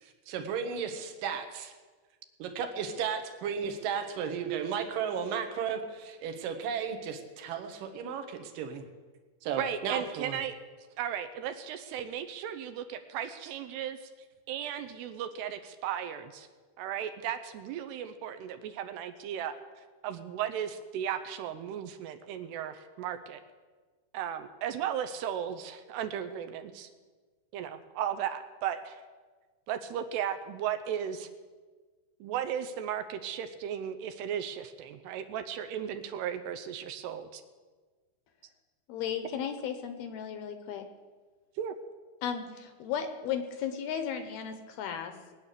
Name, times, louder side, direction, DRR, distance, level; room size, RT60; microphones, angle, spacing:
voice 1, 0.0-1.7 2.4-8.8 9.4-10.4, right 7 dB, 65° right, 5 dB, 2.6 m, -34 dB
voice 2, 9.6-10.5 11.0-14.0 14.5-16.5 16.8-19.5 20.0-23.4 24.1-26.9 27.5-29.0 29.7-31.3 32.2-37.4 41.6-41.7, right 9 dB, 80° right, 9 dB, 2.7 m, -35 dB
voice 3, 38.9-40.8 42.2-45.1, left 8 dB, 70° left, 7 dB, 2.6 m, -35 dB
20.5 x 9.6 x 6.8 m, 1.4 s
omnidirectional pair, 5.1 m